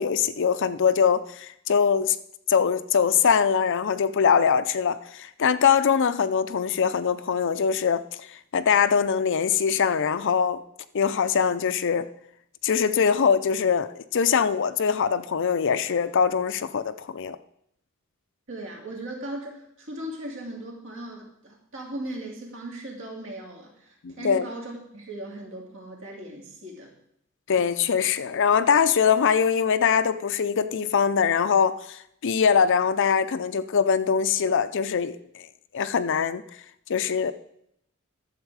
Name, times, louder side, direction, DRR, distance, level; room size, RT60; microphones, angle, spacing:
voice 1, 0.0-2.2 2.5-8.3 8.5-10.6 10.9-12.1 12.6-17.4 24.0-24.5 27.5-35.5 35.7-36.4 36.9-37.3, left 6 dB, 60° left, 12 dB, 0.5 m, -22 dB
voice 2, 18.5-26.9, right 1 dB, 60° right, 0 dB, 2.5 m, -38 dB
11.5 x 7.3 x 4.8 m, 0.74 s
head